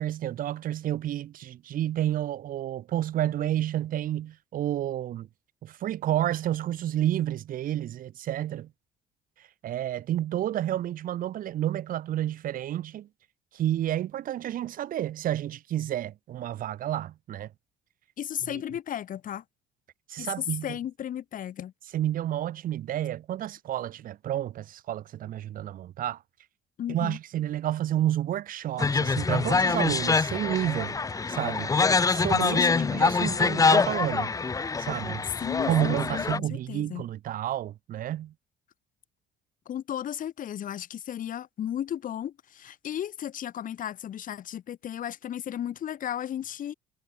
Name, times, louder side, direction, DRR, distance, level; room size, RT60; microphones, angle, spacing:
voice 1, 0.0-5.3 5.6-8.7 9.6-13.1 13.5-17.5 18.5-18.6 20.1-20.8 21.9-26.2 26.9-31.0 31.3-31.8 32.1-34.3 34.8-35.3 35.7-38.3, right 12 dB, 55° right, 0.7 m, -30 dB
voice 2, 18.2-19.4 20.2-21.7 26.8-27.2 32.5-33.1 35.4-37.1 39.7-46.7, left 10 dB, 55° left, 1.8 m, -34 dB
sound 1, 28.8-36.4, left 4 dB, 20° left, 0.9 m, -25 dB
cardioid pair, 110°, 17 cm